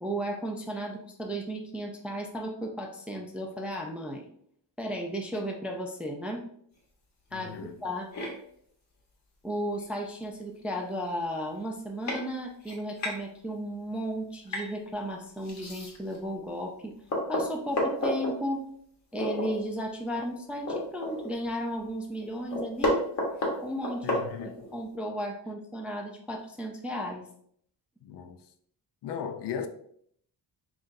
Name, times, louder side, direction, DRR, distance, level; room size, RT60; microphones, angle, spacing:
voice 1, 0.0-4.3 4.8-6.4 7.3-8.1 9.4-16.9 17.3-18.7 19.1-23.1 23.6-24.2 24.4-27.2, equal, 5° right, 0.3 m, -34 dB
voice 2, 7.3-7.8 24.0-24.7 28.0-28.4 29.0-29.7, left 7 dB, 70° left, 0.6 m, -37 dB
sound 1, 8.1-8.3 9.8-9.9 10.4-10.5 10.7-11.0 11.6-11.7 12.1-12.2 12.6-13.2 14.5-14.7 15.4-16.2 16.6-16.7 17.1-18.3 19.1-19.5 19.9-20.0 20.3-21.5 21.8-21.9 22.2-24.8, left 1 dB, 40° left, 1.3 m, -31 dB
5.6 x 2.5 x 2.6 m
cardioid pair, 140°, 43 cm